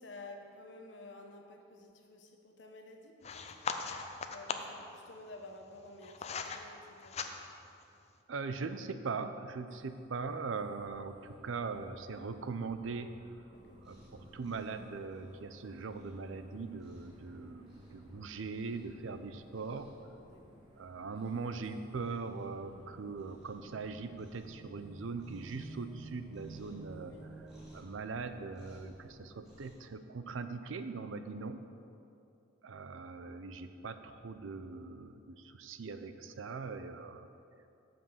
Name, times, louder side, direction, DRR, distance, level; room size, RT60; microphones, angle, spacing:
voice 1, 0.0-3.5 4.3-7.3 13.5-13.8 20.3-20.6 27.1-27.3, left 2 dB, 70° left, 3 dB, 1.0 m, -52 dB
sound 1, 3.2-4.8 5.6-6.6 7.0-7.7, left 5 dB, 35° left, 0.4 m, -39 dB
voice 2, 8.3-13.1 13.8-19.9 20.8-27.2 27.7-31.6 32.6-37.3, right 4 dB, 85° right, 10 dB, 0.5 m, -41 dB
sound 2, 9.7-27.7, right 2 dB, 25° right, 1.1 m, -56 dB
Cat, 13.5-29.8, equal, 5° right, 1.9 m, -60 dB
7.2 x 6.0 x 7.0 m, 2.6 s
head